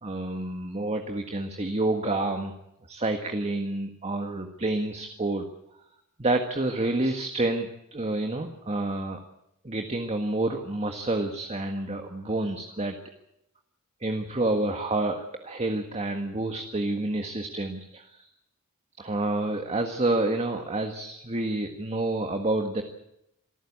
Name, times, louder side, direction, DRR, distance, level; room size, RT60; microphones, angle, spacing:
voice 1, 0.0-2.5 2.9-5.4 6.2-9.2 9.6-13.0 14.0-18.3 19.0-22.8, right 2 dB, 30° right, 5 dB, 1.6 m, -28 dB
26.5 x 14.5 x 8.6 m, 0.82 s
head